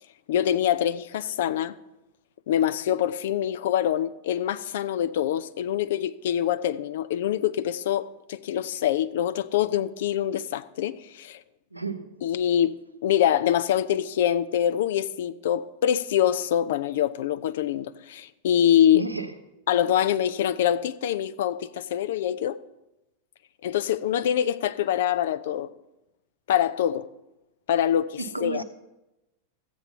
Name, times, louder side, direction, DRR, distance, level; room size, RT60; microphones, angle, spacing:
voice 1, 0.3-1.7 2.5-11.4 12.2-12.8 13.0-19.0 19.7-22.6 23.6-25.7 26.5-27.1 27.7-28.6, left 10 dB, 55° left, 0.5 m, -25 dB
voice 2, 11.7-12.2 18.9-19.3 28.2-28.6, right 3 dB, 85° right, 0.9 m, -32 dB
14.0 x 8.0 x 5.7 m
figure-of-eight pair, 90°, 0 cm